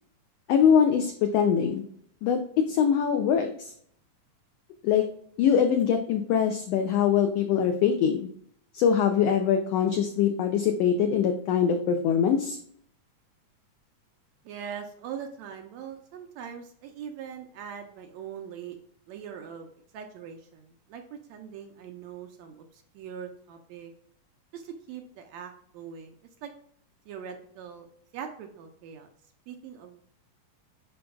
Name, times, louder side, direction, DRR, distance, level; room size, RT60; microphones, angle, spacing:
voice 1, 0.5-1.8 2.2-2.4 2.7-3.7 4.8-5.0 5.4-8.3 8.7-12.6, left 8 dB, 90° left, 6 dB, 1.4 m, -23 dB
voice 2, 14.5-18.8 19.1-23.9 24.5-26.1 26.4-26.5 27.1-27.9 28.1-29.1 29.5-30.0, right 8 dB, 75° right, 5 dB, 1.8 m, -41 dB
10.5 x 3.9 x 2.3 m, 0.65 s
omnidirectional pair, 3.6 m